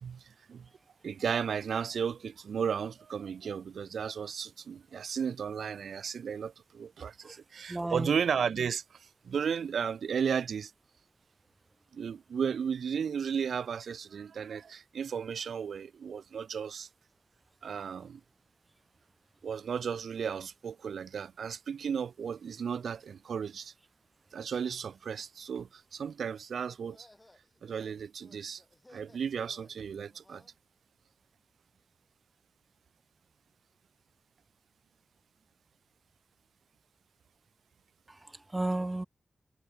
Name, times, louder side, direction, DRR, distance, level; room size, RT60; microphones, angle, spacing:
voice 1, 0.0-0.7 1.0-10.7 11.9-16.9 17.6-18.2 19.4-23.7 24.3-27.1 27.6-28.6 28.9-30.4, right 7 dB, 90° right, 0.3 m, -34 dB
voice 2, 7.7-8.1 38.1-39.1, right 2 dB, 20° right, 0.4 m, -33 dB
sound 1, 26.7-30.6, left 2 dB, 20° left, 7.9 m, -61 dB
cardioid pair, 70°, 0 cm